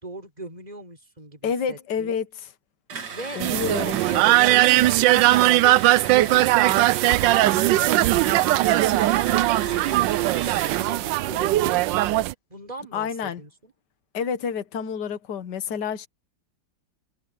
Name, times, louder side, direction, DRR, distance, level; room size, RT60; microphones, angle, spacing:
voice 1, 0.0-2.2 3.1-3.4 3.8-7.7 8.0-10.1 10.3-12.1 12.5-13.7, right 1 dB, 20° right, 3.9 m, -40 dB
voice 2, 1.4-2.3 3.4-4.0 12.9-13.4 14.1-16.1, left 7 dB, 60° left, 1.9 m, -28 dB
sound 1, 2.9-10.9, right 6 dB, 60° right, 2.4 m, -36 dB
sound 2, 3.4-12.3, right 16 dB, 75° right, 1.2 m, -19 dB
omnidirectional pair, 2.1 m